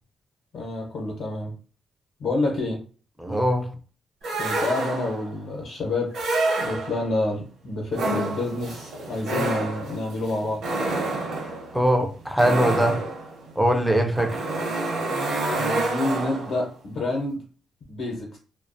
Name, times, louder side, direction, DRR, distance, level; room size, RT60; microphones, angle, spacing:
voice 1, 0.5-1.6 2.2-2.8 4.4-6.3 6.6-10.6 15.5-17.4 17.9-18.4, left 2 dB, 60° left, 0.6 m, -28 dB
voice 2, 3.2-3.7 11.7-13.1 13.6-14.4, equal, ahead, 0.4 m, -22 dB
sound 1, 4.2-5.3 6.1-7.2 7.9-16.6, right 2 dB, 75° right, 0.8 m, -28 dB
2.3 x 2.1 x 2.5 m
cardioid pair, 160°, 0 cm